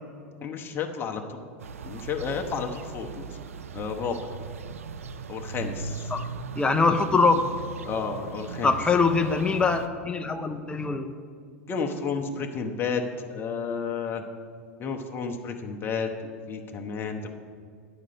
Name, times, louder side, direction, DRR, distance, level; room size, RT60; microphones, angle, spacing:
voice 1, 0.4-1.4 1.8-3.3 3.7-4.3 5.3-6.1 7.9-8.7 11.7-13.0 13.3-14.2 14.8-17.3, left 5 dB, 30° left, 3 dB, 1.0 m, -31 dB
sound 1, 1.6-9.9, right 5 dB, 85° right, 0.4 m, -38 dB
voice 2, 6.6-7.4 8.6-11.1, left 4 dB, 15° left, 7 dB, 0.5 m, -23 dB
9.5 x 5.1 x 7.7 m, 2.1 s
hypercardioid pair, 100°, 7 cm